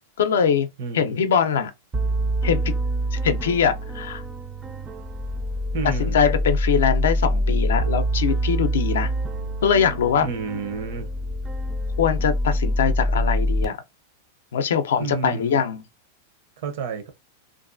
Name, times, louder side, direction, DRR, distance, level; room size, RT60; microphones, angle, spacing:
voice 1, 0.2-0.7 0.9-1.7 2.4-2.6 3.1-4.2 5.8-9.1 9.6-10.3 12.0-13.8 14.5-15.8, left 7 dB, 80° left, 0.4 m, -22 dB
voice 2, 0.8-1.2 5.7-6.2 10.2-11.1 15.0-15.7 16.6-17.1, right 5 dB, 65° right, 0.7 m, -30 dB
sound 1, 1.9-13.7, equal, 20° right, 0.4 m, -25 dB
2.5 x 2.3 x 2.5 m
hypercardioid pair, 130°, 0 cm